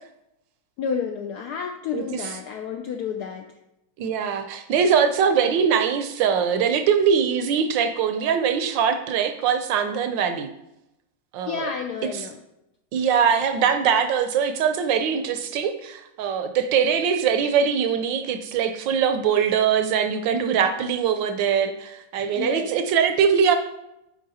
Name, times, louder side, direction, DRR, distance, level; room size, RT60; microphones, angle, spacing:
voice 1, 0.8-3.5 11.5-12.4 22.3-22.7, left 6 dB, 80° left, 4 dB, 0.9 m, -30 dB
voice 2, 4.0-10.5 11.3-11.7 12.9-23.6, right 7 dB, 75° right, 8 dB, 1.2 m, -22 dB
7.5 x 4.9 x 4.1 m, 0.87 s
omnidirectional pair, 2.3 m